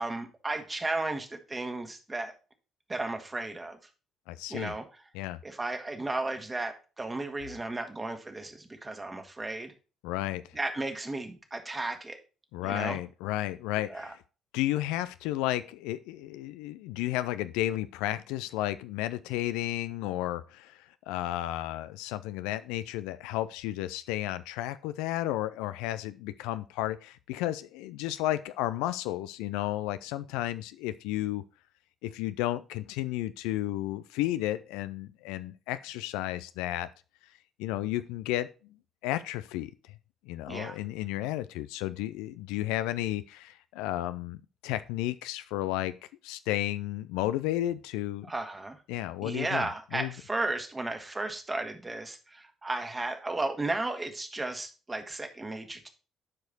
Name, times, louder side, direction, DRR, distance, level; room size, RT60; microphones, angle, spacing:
voice 1, 0.0-2.3 2.9-3.8 4.5-5.0 5.4-9.7 10.5-12.2 12.6-13.0 13.9-14.1 40.5-40.8 48.2-48.8 49.2-55.9, right 2 dB, 20° right, 6 dB, 1.7 m, -34 dB
voice 2, 4.3-4.7 5.1-5.4 10.0-10.4 12.5-14.1 14.5-20.8 21.1-31.4 32.0-36.9 37.6-38.5 39.0-39.7 40.3-44.4 44.6-45.9 46.2-48.3 48.9-50.1, left 14 dB, 70° left, 13 dB, 0.4 m, -32 dB
10.5 x 4.8 x 4.1 m, 0.34 s
hypercardioid pair, 50°, 0 cm